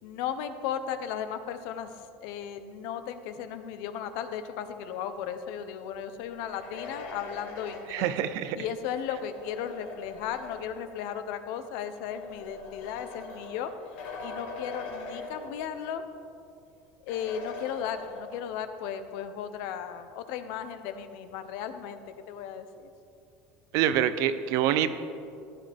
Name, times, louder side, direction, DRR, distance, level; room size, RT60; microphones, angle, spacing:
voice 1, 0.0-8.2 8.5-13.7 14.2-16.0 17.0-22.0 22.3-22.9, left 8 dB, 70° left, 10 dB, 0.9 m, -35 dB
sound 1, 6.2-10.9 11.8-16.0 16.3-16.4 17.1-18.6, left 3 dB, 85° left, 2.2 m, -43 dB
voice 2, 7.9-8.6 23.7-24.9, right 11 dB, 65° right, 12 dB, 0.7 m, -25 dB
15.0 x 10.0 x 3.6 m, 2.5 s
supercardioid pair, 130°, 6 cm